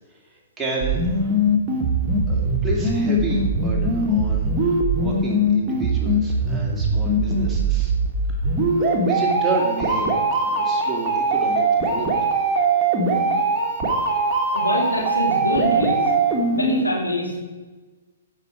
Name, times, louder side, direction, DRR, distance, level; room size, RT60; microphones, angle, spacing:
voice 1, 0.3-1.3 2.3-7.9 8.4-10.1 10.4-12.1, right 2 dB, 10° right, -4 dB, 2.6 m, -31 dB
sound 1, 0.8-16.8, right 2 dB, 25° right, 1.9 m, -21 dB
voice 2, 13.0-13.4 14.5-16.0 16.5-17.4, equal, 85° left, -3 dB, 3.3 m, -25 dB
15.0 x 5.9 x 4.9 m, 1.3 s
figure-of-eight pair, 120°, 0 cm